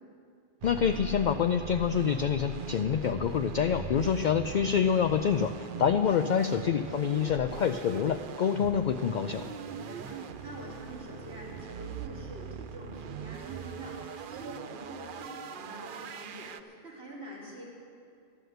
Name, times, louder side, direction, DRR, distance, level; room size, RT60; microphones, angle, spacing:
voice 1, 0.6-9.4, left 7 dB, 55° left, 8 dB, 0.6 m, -27 dB
sound 1, 0.6-16.6, right 6 dB, 60° right, 0.7 m, -41 dB
voice 2, 9.6-17.6, equal, 80° right, -5 dB, 3.2 m, -46 dB
13.5 x 11.0 x 7.9 m, 2.3 s
omnidirectional pair, 1.1 m